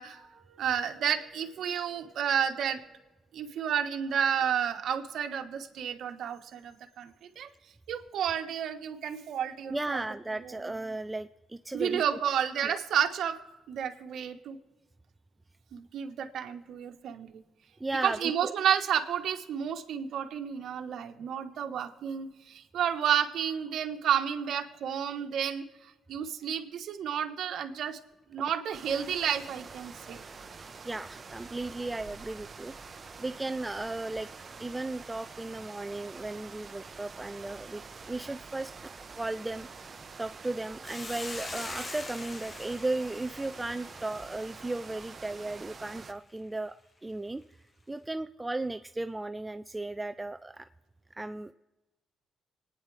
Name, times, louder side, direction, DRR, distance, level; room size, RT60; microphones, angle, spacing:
voice 1, 0.0-2.8 3.3-7.5 7.9-10.0 10.4-10.7 11.7-13.4 13.7-14.6 15.7-17.4 18.0-25.6 26.1-28.0 28.3-30.2, right 8 dB, 70° right, 5 dB, 1.2 m, -31 dB
voice 2, 9.7-12.0 17.8-18.5 30.8-34.3 34.6-38.9 39.2-39.9 40.2-46.8 47.0-47.4 47.9-50.7 51.2-51.5, right 2 dB, 15° right, 10 dB, 0.4 m, -35 dB
sound 1, 28.7-46.1, right 5 dB, 40° right, 0.8 m, -47 dB
Hiss, 40.8-45.3, left 2 dB, 30° left, 1.0 m, -43 dB
26.5 x 9.6 x 3.3 m, 1.1 s
cardioid pair, 90°, 0 cm